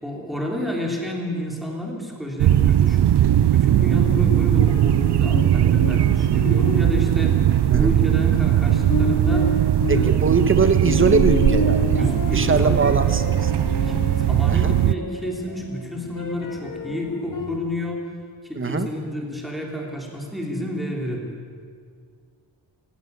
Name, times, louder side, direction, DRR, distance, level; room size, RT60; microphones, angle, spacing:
voice 1, 0.0-3.2 3.5-7.5 7.7-9.6 9.9-10.5 11.9-12.9 13.8-18.1 18.4-21.4, left 1 dB, ahead, -1 dB, 3.5 m, -30 dB
sound 1, 2.4-14.9, right 12 dB, 70° right, 0.6 m, -19 dB
sound 2, 4.7-17.6, left 2 dB, 50° left, 1.9 m, -30 dB
voice 2, 9.9-13.5 14.5-14.7 18.5-18.9, right 4 dB, 30° right, 9 dB, 1.3 m, -22 dB
18.0 x 16.5 x 9.6 m, 2.1 s
wide cardioid pair, 160°, 42 cm